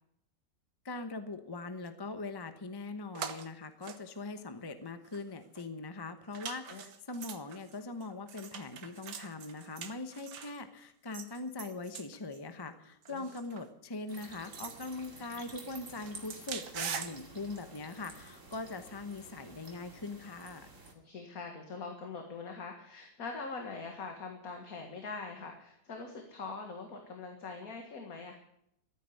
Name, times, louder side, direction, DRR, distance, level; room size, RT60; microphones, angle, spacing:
voice 1, 0.8-20.7, left 3 dB, 20° left, 9 dB, 0.9 m, -41 dB
sound 1, 3.2-3.5 3.8-4.7 5.0-5.2 5.6-5.7 6.3-10.6 11.1-12.4 13.0-13.7 14.2-15.7 16.0-17.2 17.7-17.8, right 7 dB, 80° right, 1.7 m, -43 dB
sound 2, 14.1-20.9, right 3 dB, 45° right, 2.8 m, -51 dB
voice 2, 21.0-28.4, left 4 dB, 60° left, 3 dB, 2.2 m, -43 dB
14.0 x 9.3 x 9.7 m, 0.74 s
omnidirectional pair, 1.8 m